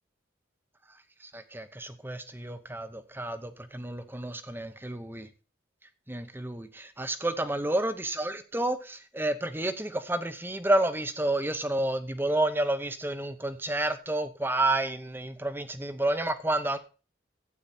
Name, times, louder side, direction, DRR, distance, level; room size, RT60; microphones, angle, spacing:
voice 1, 1.3-5.3 6.1-16.8, right 1 dB, 10° right, 10 dB, 0.8 m, -30 dB
12.0 x 8.7 x 4.3 m, 0.35 s
head